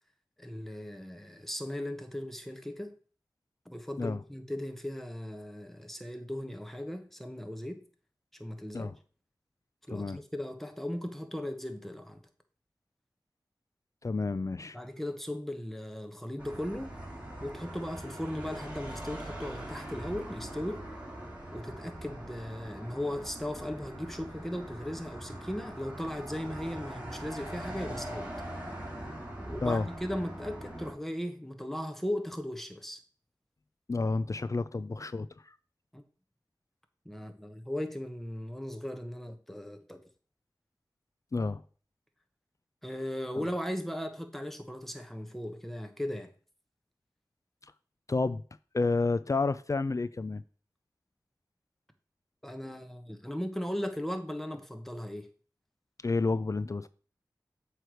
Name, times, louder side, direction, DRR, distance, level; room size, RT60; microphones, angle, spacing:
voice 1, 0.4-2.9 3.6-7.8 8.4-8.9 9.9-12.2 14.7-17.0 17.4-20.8 21.5-28.3 29.4-33.0 35.9-36.0 37.0-40.0 42.8-46.3 52.4-55.3, left 1 dB, 5° left, 1.2 m, -37 dB
voice 2, 9.9-10.2 14.0-14.8 29.6-29.9 33.9-35.6 41.3-41.6 43.4-43.5 48.1-48.4 48.7-50.4 56.0-56.9, left 3 dB, 45° left, 0.4 m, -30 dB
sound 1, 16.4-30.9, right 1 dB, 15° right, 2.6 m, -42 dB
7.6 x 3.3 x 6.3 m
cardioid pair, 40°, 8 cm